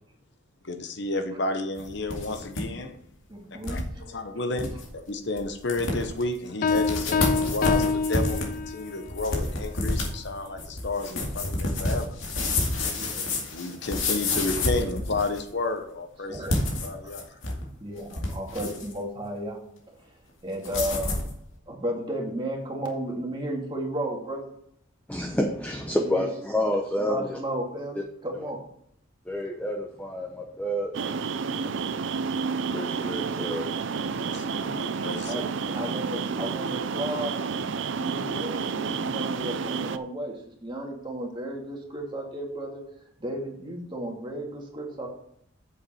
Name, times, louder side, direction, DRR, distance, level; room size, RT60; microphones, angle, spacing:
voice 1, 0.6-2.9 3.7-3.8 4.1-12.2 13.5-16.6 16.8-17.3 34.3-35.5 35.8-35.9, left 2 dB, 60° left, 7 dB, 0.9 m, -31 dB
sound 1, 1.8-2.6 2.9-3.0 3.6-3.8 4.3-4.4 4.6-4.9 5.4-5.5 5.7-6.2 6.7-15.5 16.3-17.6 18.0-18.9 20.6-21.3, left 2 dB, 85° left, 2.3 m, -29 dB
voice 2, 3.3-3.8 12.9-13.3 16.3-16.6 17.0-17.2 17.8-19.6 20.0-20.1 20.4-21.2 21.7-24.5 25.9-26.3 27.0-28.6 31.5-31.8 35.3-37.4 37.8-42.8 43.2-45.1, right 1 dB, 25° right, 0 dB, 2.0 m, -34 dB
Piano, 6.6-9.0, left 4 dB, 45° left, 0.3 m, -26 dB
voice 3, 25.1-27.4 28.3-28.5 29.3-30.9 32.7-33.6 35.0-35.1, equal, 10° left, 0 dB, 0.7 m, -29 dB
sound 2, 30.9-40.0, right 5 dB, 65° right, 0.5 m, -30 dB
8.5 x 7.2 x 4.3 m, 0.70 s
head